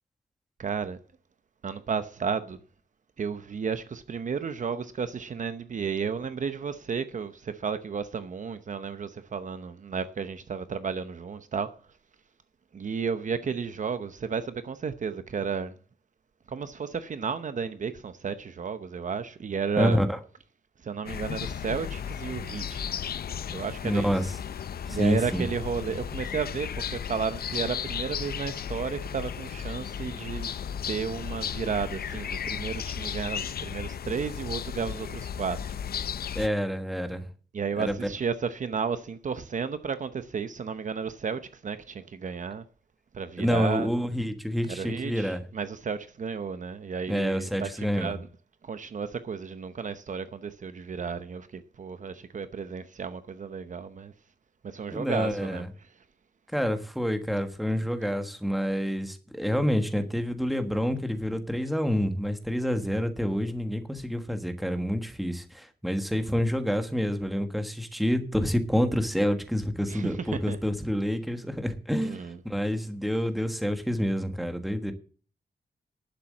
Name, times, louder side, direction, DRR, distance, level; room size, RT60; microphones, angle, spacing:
voice 1, 0.6-1.0 1.6-2.6 3.2-11.7 12.7-15.7 16.5-20.0 20.8-22.9 23.5-24.1 24.8-30.5 30.9-35.8 37.5-42.6 43.1-43.9 44.7-48.3 48.6-54.1 54.6-55.6 69.9-70.6 72.0-72.4, right 6 dB, 50° right, 0.8 m, -33 dB
voice 2, 19.8-20.2 23.8-24.3 24.9-25.4 36.3-37.3 37.8-38.0 43.4-45.4 47.1-48.1 54.9-55.7 56.5-74.9, equal, ahead, 1.4 m, -28 dB
sound 1, 21.1-36.5, left 8 dB, 70° left, 0.6 m, -35 dB
11.5 x 7.4 x 7.5 m
wide cardioid pair, 175°, 17 cm